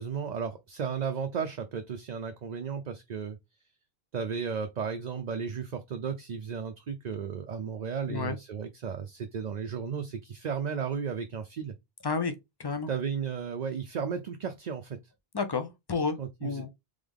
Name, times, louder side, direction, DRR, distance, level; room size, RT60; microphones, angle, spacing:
voice 1, 0.0-3.4 4.1-11.7 12.9-15.0 16.2-16.7, right 6 dB, 50° right, 0.6 m, -34 dB
voice 2, 12.6-12.9 15.3-16.7, left 4 dB, 30° left, 0.6 m, -31 dB
3.8 x 3.5 x 3.5 m
omnidirectional pair, 1.0 m